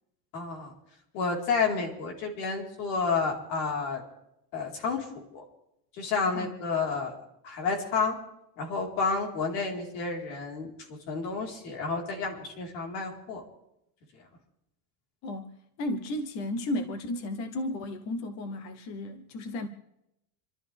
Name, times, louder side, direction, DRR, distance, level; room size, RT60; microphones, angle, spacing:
voice 1, 0.3-0.7 1.1-4.0 4.5-5.0 5.3-5.4 6.0-7.1 7.4-8.2 8.6-10.7 11.1-13.4, left 4 dB, 75° left, 4.3 m, -30 dB
voice 2, 15.2-19.7, left 1 dB, 35° left, 0.9 m, -34 dB
28.5 x 12.5 x 3.5 m
cardioid pair, 170°, 49 cm